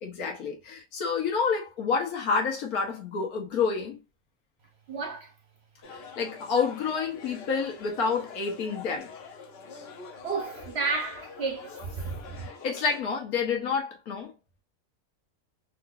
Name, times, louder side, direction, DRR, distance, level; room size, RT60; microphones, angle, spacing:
voice 1, 0.0-4.0 5.9-9.1 12.4-14.3, left 5 dB, 75° left, 1.5 m, -29 dB
voice 2, 4.9-5.3 10.2-12.5, right 4 dB, 55° right, 0.8 m, -32 dB
sound 1, 5.8-13.0, left 5 dB, 55° left, 0.7 m, -45 dB
3.8 x 2.9 x 2.3 m
omnidirectional pair, 1.6 m